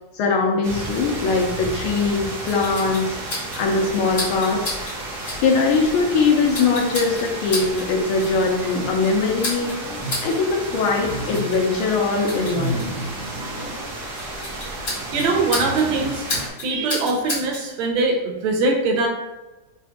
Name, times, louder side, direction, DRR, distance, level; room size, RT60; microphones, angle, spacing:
voice 1, 0.1-4.7 5.4-9.7 10.2-12.8, left 4 dB, 80° left, 1 dB, 1.6 m, -21 dB
sound 1, 0.6-16.5, right 2 dB, 55° right, 1.4 m, -33 dB
sound 2, 2.0-17.7, left 1 dB, 35° left, 1.5 m, -34 dB
sound 3, 8.6-9.0 9.5-10.2 10.6-11.6 11.9-13.8 15.0-16.4, equal, 15° right, 0.7 m, -32 dB
voice 2, 15.1-16.3 16.6-19.1, right 3 dB, 75° right, 1 dB, 1.4 m, -22 dB
4.4 x 3.8 x 2.4 m, 1.1 s
omnidirectional pair, 2.3 m